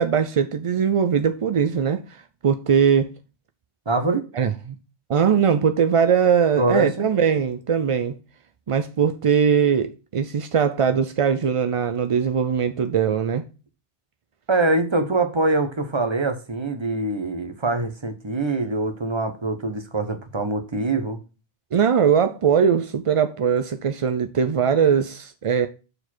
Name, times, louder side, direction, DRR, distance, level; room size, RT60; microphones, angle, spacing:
voice 1, 0.0-2.2 2.4-3.1 4.4-4.5 5.1-8.1 8.7-13.5 21.7-25.7, right 7 dB, 50° right, 0.4 m, -20 dB
voice 2, 3.9-4.2 6.6-7.1 14.5-21.2, right 2 dB, 30° right, 1.0 m, -24 dB
6.6 x 4.7 x 4.3 m
omnidirectional pair, 1.1 m